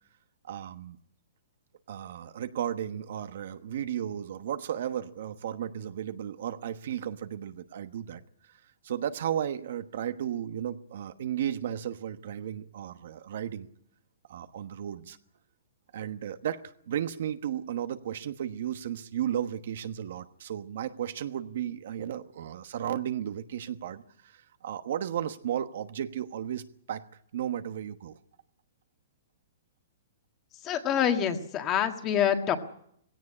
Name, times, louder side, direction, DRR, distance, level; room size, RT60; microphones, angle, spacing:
voice 1, 0.4-1.0 1.9-8.2 8.8-13.7 14.3-15.2 15.9-26.6 26.9-27.0 27.3-28.1, right 10 dB, 60° right, 10 dB, 1.2 m, -34 dB
voice 2, 30.6-32.6, left 9 dB, 25° left, 6 dB, 1.7 m, -26 dB
18.0 x 17.0 x 9.8 m, 0.70 s
hypercardioid pair, 160°, 0 cm